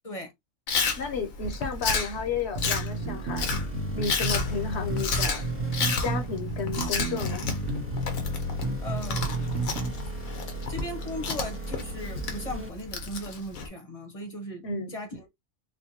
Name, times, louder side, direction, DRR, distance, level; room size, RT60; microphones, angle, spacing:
Chewing mastication, 0.7-13.7, left 4 dB, 90° left, 1.3 m, -32 dB
voice 1, 1.0-3.5 3.9-5.4 6.0-7.5 14.6-14.9, left 4 dB, 60° left, 0.9 m, -32 dB
sound 1, 2.5-9.9, right 1 dB, 75° right, 1.3 m, -31 dB
sound 2, 2.9-12.7, right 2 dB, 10° right, 0.9 m, -38 dB
voice 2, 8.8-9.4 10.7-14.6 14.9-15.3, equal, 30° left, 0.8 m, -37 dB
4.3 x 2.2 x 2.8 m
omnidirectional pair, 1.4 m